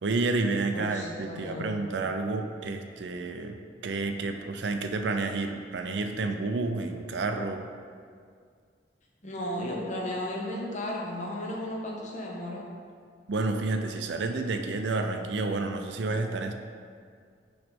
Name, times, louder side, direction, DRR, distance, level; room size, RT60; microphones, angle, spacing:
voice 1, 0.0-3.6 3.8-7.6 13.3-16.5, right 3 dB, 75° right, 6 dB, 0.5 m, -30 dB
voice 2, 0.7-1.7 9.2-12.6, left 1 dB, 45° left, -2 dB, 1.0 m, -34 dB
5.9 x 3.2 x 5.2 m, 2.1 s
head